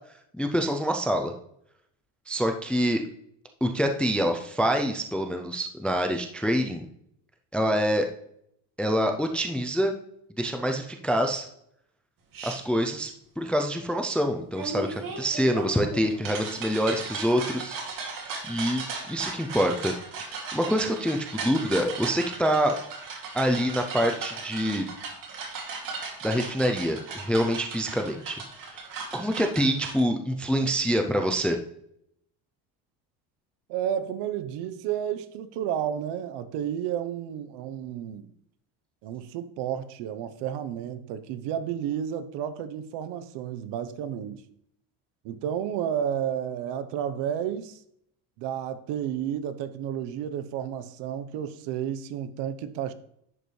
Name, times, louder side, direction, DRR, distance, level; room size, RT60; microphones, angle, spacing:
voice 1, 0.3-1.3 2.3-3.0 3.6-6.8 7.5-8.1 8.8-9.9 10.4-11.5 12.4-17.8 18.5-19.9 20.3-22.7 23.3-24.9 26.2-28.4 28.7-28.8 29.1-31.6, equal, 5° left, 0.4 m, -26 dB
sound 1, 12.3-12.6 14.6-30.0, right 4 dB, 45° right, 2.6 m, -37 dB
voice 2, 33.7-38.3 39.0-44.4 45.2-47.8 48.4-52.9, right 9 dB, 65° right, 1.0 m, -31 dB
11.0 x 7.7 x 3.2 m
cardioid pair, 155°, 44 cm